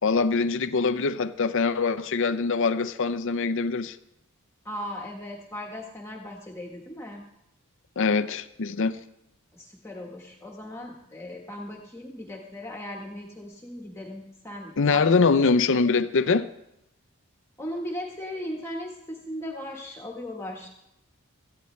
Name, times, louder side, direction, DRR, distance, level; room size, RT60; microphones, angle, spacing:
voice 1, 0.0-4.0 8.0-9.0 14.8-16.5, left 4 dB, 60° left, 0.6 m, -23 dB
voice 2, 4.6-7.2 9.5-15.0 17.6-20.7, left 1 dB, 10° left, 1.3 m, -37 dB
18.0 x 13.5 x 3.2 m
head